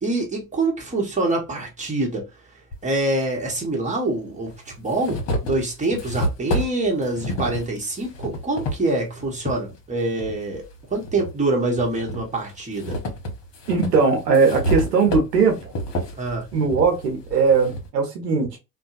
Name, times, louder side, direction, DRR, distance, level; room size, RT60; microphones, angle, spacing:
voice 1, 0.0-2.2 2.8-4.5 4.8-10.6 10.9-12.9 16.2-16.5, right 2 dB, 15° right, 1.1 m, -25 dB
sound 1, 2.7-2.8 3.9-4.0 4.5-9.6 10.1-11.3 11.7-17.9, equal, 55° left, 1.0 m, -29 dB
voice 2, 13.7-15.7 16.5-18.6, right 5 dB, 80° right, 0.9 m, -19 dB
2.6 x 2.2 x 2.5 m
figure-of-eight pair, 60°, 48 cm